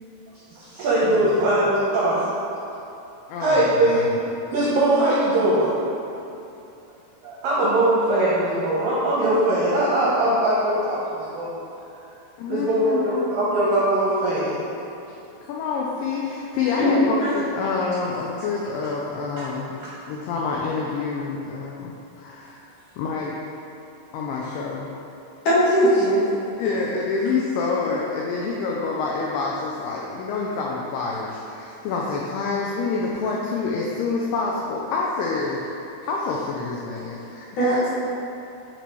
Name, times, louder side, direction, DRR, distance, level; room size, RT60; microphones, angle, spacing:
voice 1, 0.6-2.3 3.4-4.1 4.5-5.7 7.2-11.6 12.5-14.6, right 1 dB, 80° right, -8 dB, 2.1 m, -21 dB
voice 2, 3.3-4.2 12.4-13.6 15.5-19.7 20.1-23.4 24.1-24.9 26.6-35.6 36.1-37.9, left 4 dB, 90° left, -2 dB, 2.2 m, -27 dB
voice 3, 25.4-26.2 37.6-37.9, equal, 50° left, -11 dB, 2.6 m, -19 dB
10.5 x 4.0 x 4.6 m, 2.8 s
omnidirectional pair, 5.4 m